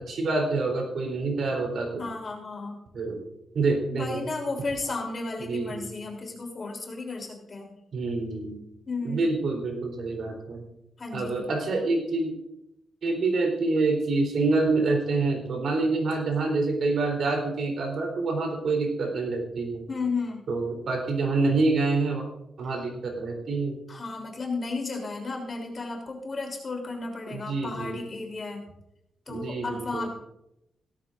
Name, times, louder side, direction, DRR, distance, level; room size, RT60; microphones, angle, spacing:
voice 1, 0.1-2.0 2.9-3.3 3.5-4.2 5.5-5.9 7.9-8.6 9.0-10.7 11.1-12.3 13.0-19.8 20.5-22.2 22.6-23.8 27.3-28.0 29.3-30.1, right 3 dB, 65° right, 2 dB, 3.6 m, -27 dB
voice 2, 2.0-2.8 3.9-7.7 8.9-9.3 11.0-11.5 19.9-20.4 23.9-28.7 29.3-30.1, left 3 dB, 35° left, 1 dB, 3.3 m, -33 dB
17.0 x 13.5 x 2.6 m, 0.83 s
wide cardioid pair, 135°, 0 cm